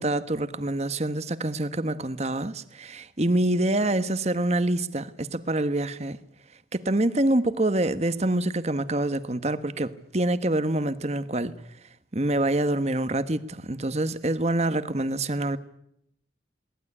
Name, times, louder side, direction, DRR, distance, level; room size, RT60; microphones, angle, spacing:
voice 1, 0.0-6.2 6.7-11.5 12.1-15.6, right 1 dB, 35° right, 1.2 m, -26 dB
22.0 x 18.5 x 9.9 m
head